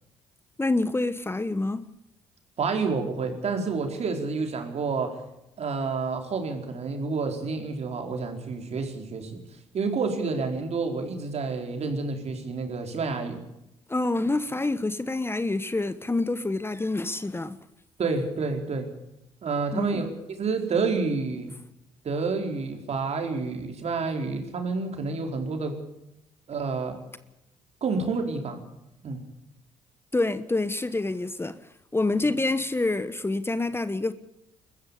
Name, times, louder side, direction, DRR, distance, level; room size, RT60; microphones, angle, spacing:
voice 1, 0.6-1.8 13.9-17.6 19.7-20.0 30.1-31.6 31.9-34.1, left 2 dB, 15° left, 1.3 m, -27 dB
voice 2, 2.6-5.2 5.6-9.4 9.7-13.4 18.0-18.9 19.4-21.5 22.0-25.8 26.5-27.0 27.8-28.6 29.0-29.2 32.1-32.2, right 4 dB, 55° right, 4.7 m, -29 dB
22.0 x 14.5 x 8.5 m
hypercardioid pair, 55°, 13 cm